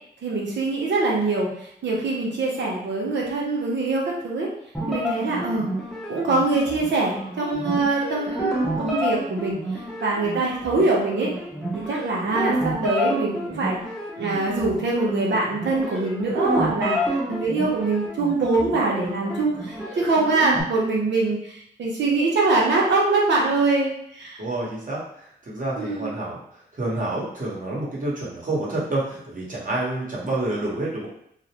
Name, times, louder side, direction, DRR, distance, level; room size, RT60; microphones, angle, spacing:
voice 1, 0.2-4.5 4.9-5.7 6.1-9.6 10.0-11.3 11.7-13.8 14.2-24.4 25.8-26.2, right 3 dB, 85° right, -3 dB, 0.7 m, -23 dB
sound 1, 4.7-20.6, equal, ahead, 0.7 m, -30 dB
voice 2, 24.4-25.0 25.4-26.4 26.8-31.1, right 2 dB, 50° right, -5 dB, 1.1 m, -28 dB
2.4 x 2.0 x 2.9 m, 0.73 s
cardioid pair, 65°, 18 cm